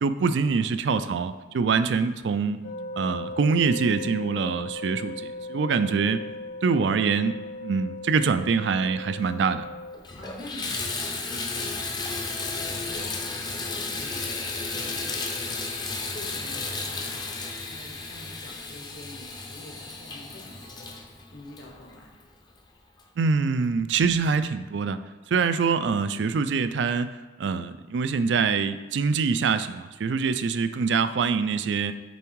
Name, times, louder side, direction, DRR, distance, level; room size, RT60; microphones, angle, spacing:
voice 1, 0.0-2.6 3.0-6.2 6.6-7.3 7.6-9.6 23.2-25.0 25.3-27.1 27.4-31.9, right 5 dB, 70° right, 12 dB, 0.4 m, -24 dB
sound 1, 2.6-10.0, left 2 dB, 85° left, 0.8 m, -38 dB
Water tap faucet / Bathtub (filling or washing), 9.4-9.5 9.9-22.3 23.0-23.1 23.6-23.7, left 3 dB, 25° left, 0.6 m, -33 dB
voice 2, 10.2-15.2 16.1-17.3 17.7-21.0 21.3-22.1, left 1 dB, 65° left, 0 dB, 1.3 m, -46 dB
7.1 x 3.5 x 4.6 m, 1.3 s
head